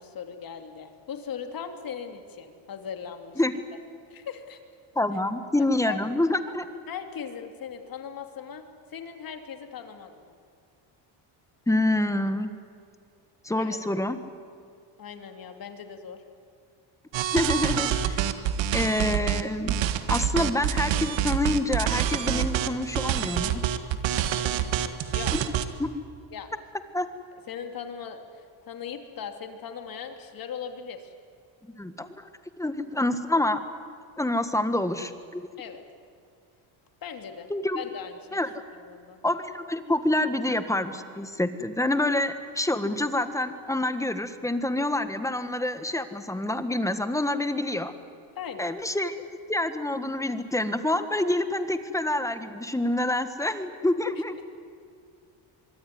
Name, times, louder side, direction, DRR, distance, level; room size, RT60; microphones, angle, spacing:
voice 1, 0.0-3.4 4.1-4.6 5.6-6.0 6.9-10.3 13.5-13.8 15.0-16.2 24.5-24.8 25.1-25.4 26.3-26.5 27.5-31.1 35.6-35.8 37.0-37.5 37.8-38.4 38.7-39.2 48.3-48.8 54.4-54.5, left 7 dB, 45° left, 6 dB, 3.0 m, -39 dB
voice 2, 4.9-6.7 11.7-12.5 13.4-14.2 17.3-18.2 18.7-19.8 20.1-23.6 25.3-25.4 25.8-25.9 26.9-27.1 31.6-32.3 32.6-33.6 34.2-35.4 37.5-37.8 38.3-38.5 39.2-47.9 48.6-49.1 49.5-54.3, left 1 dB, 5° left, 10 dB, 1.5 m, -27 dB
sound 1, 17.1-19.4 19.7-25.6, right 10 dB, 70° right, 1.8 m, -26 dB
24.0 x 24.0 x 9.6 m, 2.3 s
cardioid pair, 130°, 47 cm